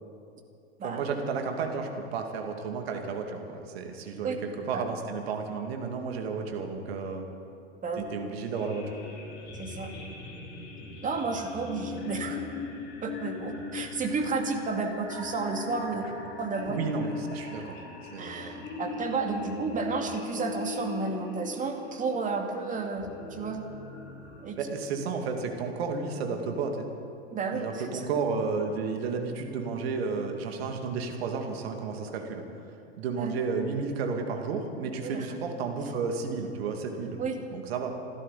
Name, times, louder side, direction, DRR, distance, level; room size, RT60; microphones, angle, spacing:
voice 1, 0.8-7.2 8.1-8.8 16.7-17.8 18.1-18.7 24.6-26.9 27.5-32.4 33.0-37.2 37.5-37.9, right 5 dB, 65° right, 4 dB, 2.4 m, -32 dB
sound 1, 8.5-24.4, left 4 dB, 30° left, 4.0 m, -40 dB
voice 2, 9.5-9.9 11.0-12.4 13.0-16.0 16.4-16.8 18.2-23.6 24.4-24.6 27.3-28.1 33.2-33.4 35.0-35.4 37.2-37.4, right 4 dB, 25° right, 3 dB, 2.2 m, -32 dB
27.0 x 12.5 x 4.2 m, 2.8 s
hypercardioid pair, 95°, 33 cm